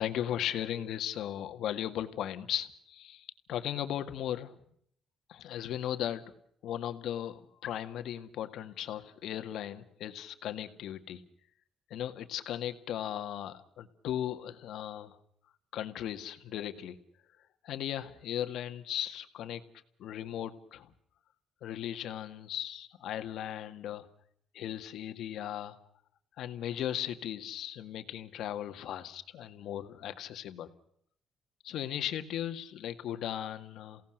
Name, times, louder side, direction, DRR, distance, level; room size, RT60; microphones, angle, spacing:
voice 1, 0.0-4.6 5.3-6.2 6.6-11.2 11.9-15.2 15.7-17.0 17.6-19.6 20.0-20.9 21.6-24.1 24.5-25.8 26.4-30.7 31.6-34.0, left 11 dB, 80° left, 9 dB, 1.9 m, -37 dB
28.5 x 17.5 x 6.6 m, 0.66 s
cardioid pair, 90°, 0 cm